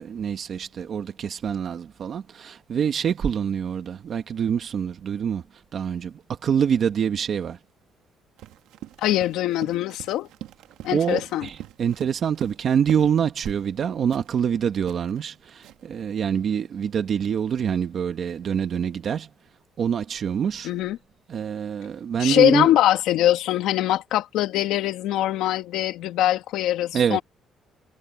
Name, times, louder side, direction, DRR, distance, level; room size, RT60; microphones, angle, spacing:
voice 1, 0.0-5.4 5.7-6.1 6.4-7.6 10.9-19.3 19.8-20.7 21.3-22.7 26.9-27.2, right 8 dB, 45° right, 1.5 m, -25 dB
Run, 8.4-13.2 13.4-13.7 14.1-16.0, right 13 dB, 90° right, 1.9 m, -42 dB
voice 2, 9.0-10.3 10.8-11.5 20.6-21.0 22.2-27.2, left 13 dB, 85° left, 1.6 m, -22 dB
cardioid pair, 135°, 0 cm